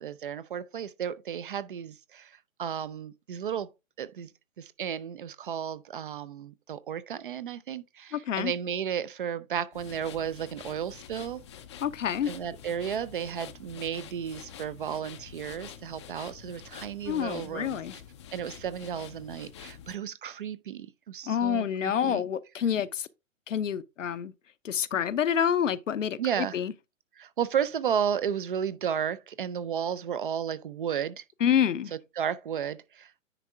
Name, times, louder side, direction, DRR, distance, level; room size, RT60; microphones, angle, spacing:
voice 1, 0.0-2.3 2.6-3.7 4.0-4.3 4.6-11.4 12.3-18.0 18.3-22.2 26.2-26.6 27.2-31.2 31.9-33.2, right 8 dB, 40° right, 0.5 m, -33 dB
voice 2, 8.1-8.5 11.8-12.3 17.1-17.9 21.3-23.1 23.5-24.3 24.6-26.7 31.4-31.9, left 8 dB, 65° left, 0.8 m, -28 dB
sound 1, 9.7-20.0, left 9 dB, 20° left, 0.5 m, -47 dB
10.0 x 4.3 x 3.6 m
figure-of-eight pair, 130°, 41 cm